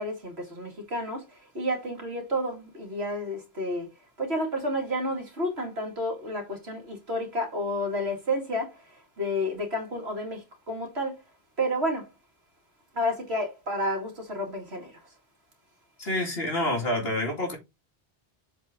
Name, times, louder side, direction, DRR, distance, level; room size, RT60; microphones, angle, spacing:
voice 1, 0.0-3.9 4.2-11.2 11.6-12.1 12.9-14.9, equal, 70° right, 2.7 m, -31 dB
voice 2, 16.0-17.6, left 1 dB, 65° left, 2.8 m, -28 dB
7.3 x 4.3 x 3.7 m
omnidirectional pair, 1.1 m